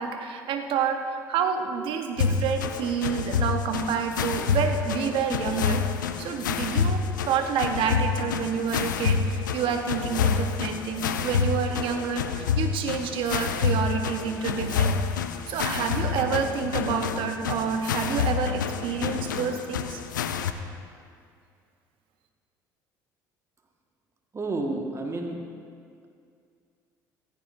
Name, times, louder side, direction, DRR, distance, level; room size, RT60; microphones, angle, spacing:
voice 1, 0.0-15.0 15.5-20.0, right 6 dB, 55° right, 5 dB, 1.2 m, -28 dB
sound 1, 2.2-20.5, left 6 dB, 80° left, 0.6 m, -28 dB
voice 2, 24.3-25.4, right 2 dB, 30° right, 2 dB, 1.7 m, -30 dB
16.0 x 15.5 x 2.7 m, 2.2 s
hypercardioid pair, 60°, 10 cm